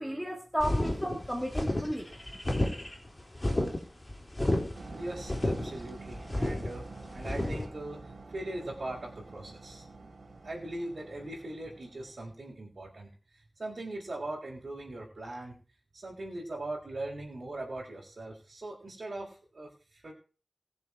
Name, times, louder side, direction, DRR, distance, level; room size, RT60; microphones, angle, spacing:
voice 1, 0.0-2.1, equal, ahead, 2 dB, 2.1 m, -33 dB
sound 1, 0.6-7.7, left 1 dB, 30° left, 4.2 m, -31 dB
sound 2, 4.7-12.3, right 3 dB, 85° right, 3.1 m, -48 dB
voice 2, 4.9-9.9 10.4-15.6 15.9-20.1, right 2 dB, 65° right, -6 dB, 3.9 m, -40 dB
20.0 x 7.0 x 4.8 m, 0.36 s
wide cardioid pair, 65°, 0 cm